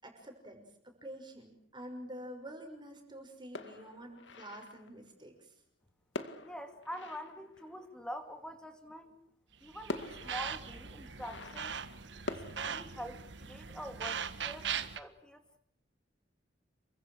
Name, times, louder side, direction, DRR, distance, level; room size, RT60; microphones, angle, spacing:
voice 1, 0.0-5.5, equal, 25° right, 4 dB, 6.1 m, -48 dB
sound 1, 3.6-5.0 6.1-8.1 9.3-9.4 9.9-12.5, left 2 dB, 75° left, 2.2 m, -45 dB
voice 2, 6.4-9.1 9.6-11.8 12.3-15.6, equal, 5° left, 7 dB, 2.4 m, -45 dB
sound 2, 9.6-15.0, right 7 dB, 70° right, 1.5 m, -40 dB
28.5 x 24.5 x 6.4 m, 0.66 s
head